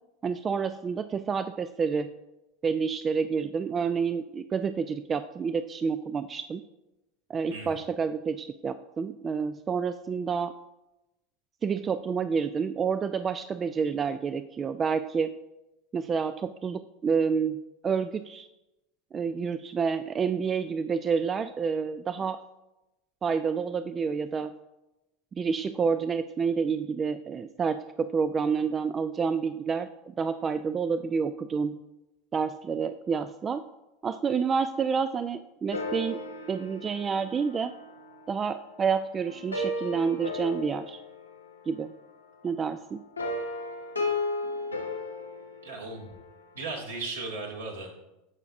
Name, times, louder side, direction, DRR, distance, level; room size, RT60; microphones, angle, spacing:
voice 1, 0.2-2.1 2.6-6.6 7.3-10.5 11.6-15.4 15.9-18.5 19.1-22.4 23.2-24.5 25.3-31.8 32.3-33.6 34.0-36.2 36.5-37.7 38.3-41.0 41.7-41.9 42.4-43.0, right 6 dB, 25° right, 12 dB, 0.3 m, -29 dB
sound 1, 35.7-38.7 39.3-42.0 43.2-46.4, left 2 dB, 85° left, 1.2 m, -35 dB
voice 2, 45.6-46.1 46.5-47.9, right 3 dB, 70° right, 0 dB, 2.1 m, -36 dB
17.0 x 5.8 x 2.6 m, 0.97 s
figure-of-eight pair, 80°, 0 cm